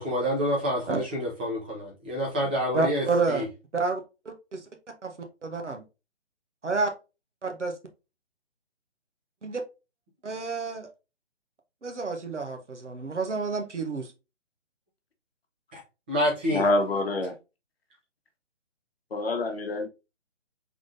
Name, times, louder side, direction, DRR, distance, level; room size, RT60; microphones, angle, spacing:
voice 1, 0.0-3.4 15.7-15.8 16.1-16.6, equal, 10° right, 0.5 m, -28 dB
voice 2, 2.7-3.4 3.7-4.6 5.0-5.1 5.4-5.8 6.6-6.9 7.4-7.7 9.4-9.6 10.2-10.9 11.8-14.1, right 4 dB, 80° right, 1.1 m, -29 dB
voice 3, 16.5-17.3 19.1-19.9, left 2 dB, 55° left, 1.0 m, -26 dB
3.7 x 3.5 x 2.6 m
figure-of-eight pair, 140°, 35 cm